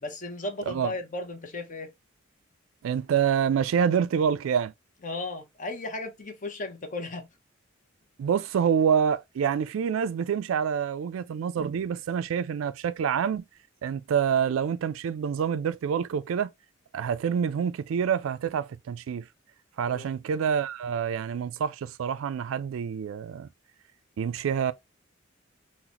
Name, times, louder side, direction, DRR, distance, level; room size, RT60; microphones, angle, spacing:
voice 1, 0.0-1.9 5.0-7.3 19.9-20.1, left 2 dB, 40° left, 0.7 m, -35 dB
voice 2, 2.8-4.7 8.2-13.4 13.8-16.5 16.9-19.3 19.8-23.5 24.2-24.7, right 7 dB, 85° right, 0.3 m, -27 dB
3.9 x 2.1 x 2.9 m
head